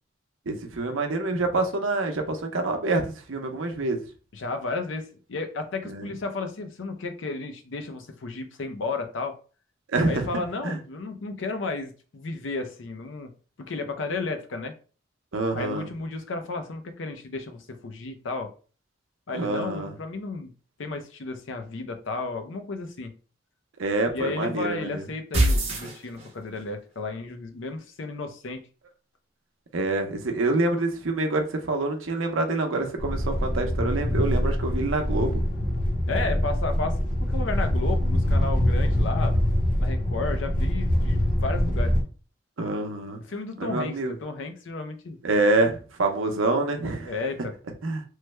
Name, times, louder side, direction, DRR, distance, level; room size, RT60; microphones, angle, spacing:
voice 1, 0.5-3.0 3.3-4.0 5.9-6.1 9.9-10.8 15.3-15.9 19.3-19.9 23.8-25.0 29.7-35.4 42.6-43.2 43.6-44.2 45.2-47.1 47.8-48.0, right 2 dB, 90° right, 4 dB, 0.7 m, -26 dB
voice 2, 4.3-9.4 10.1-13.3 13.6-14.7 15.5-18.5 19.3-20.5 20.8-23.1 24.1-28.7 36.1-39.4 39.8-41.9 43.3-45.2 47.0-47.5, left 3 dB, 80° left, 7 dB, 0.5 m, -33 dB
sound 1, 25.3-26.6, right 1 dB, 35° right, 0.9 m, -23 dB
sound 2, 33.0-42.0, left 1 dB, 40° left, 0.8 m, -24 dB
3.2 x 2.1 x 3.2 m, 0.38 s
head